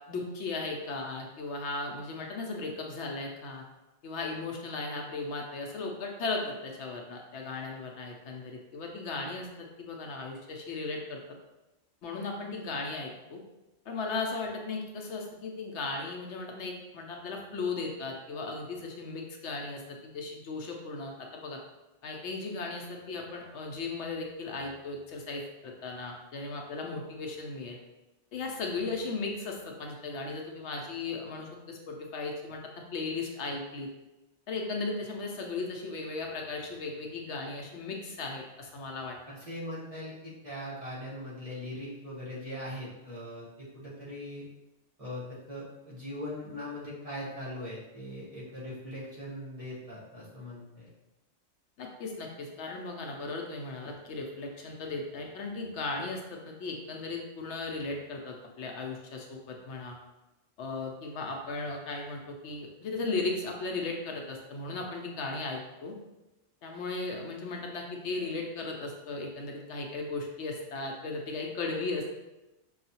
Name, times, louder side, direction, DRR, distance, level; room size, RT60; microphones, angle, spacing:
voice 1, 0.1-3.6 4.0-11.2 12.0-13.4 13.9-21.6 22.0-27.8 28.3-33.9 34.5-39.2 51.8-60.0 60.6-66.0 66.6-72.1, left 3 dB, 70° left, 1 dB, 0.9 m, -36 dB
voice 2, 39.3-44.5 45.0-50.9, left 1 dB, 30° right, -8 dB, 1.1 m, -40 dB
5.5 x 2.3 x 2.8 m, 1.0 s
omnidirectional pair, 1.2 m